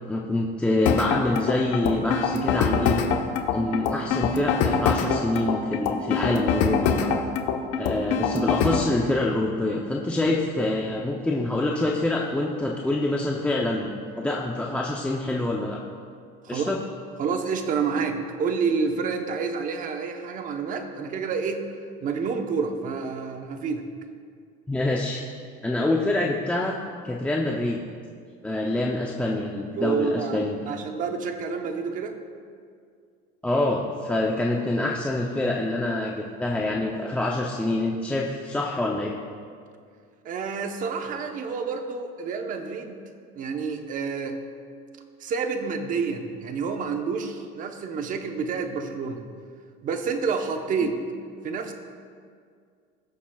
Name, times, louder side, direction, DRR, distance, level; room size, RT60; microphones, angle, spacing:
voice 1, 0.1-3.0 3.5-7.1 7.8-13.9 14.2-15.8 16.5-16.8 24.7-25.2 25.6-26.8 27.0-27.9 28.4-30.7 33.4-39.1, left 2 dB, 5° left, -2 dB, 0.6 m, -26 dB
sound 1, 0.8-8.9, left 6 dB, 85° left, 1.0 m, -24 dB
voice 2, 17.2-21.6 22.0-23.9 29.8-32.2 40.2-43.0 43.3-44.4 45.2-49.2 49.8-51.0 51.4-51.7, right 5 dB, 40° right, 5 dB, 0.9 m, -28 dB
21.0 x 7.1 x 2.3 m, 2.2 s
cardioid pair, 145°, 21 cm